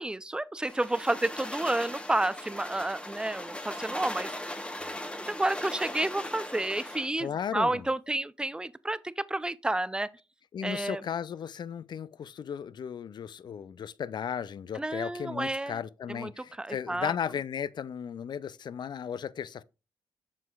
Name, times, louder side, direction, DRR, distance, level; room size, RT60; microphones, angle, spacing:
voice 1, 0.0-4.3 5.1-10.1 10.6-11.0 14.7-15.8 16.1-16.3 16.6-17.1, right 2 dB, 10° right, 0.4 m, -30 dB
sound 1, 0.6-7.1, left 1 dB, 10° left, 1.0 m, -39 dB
voice 2, 7.2-7.9 10.5-19.6, left 8 dB, 50° left, 0.4 m, -35 dB
7.4 x 6.2 x 2.3 m
supercardioid pair, 50°, 9 cm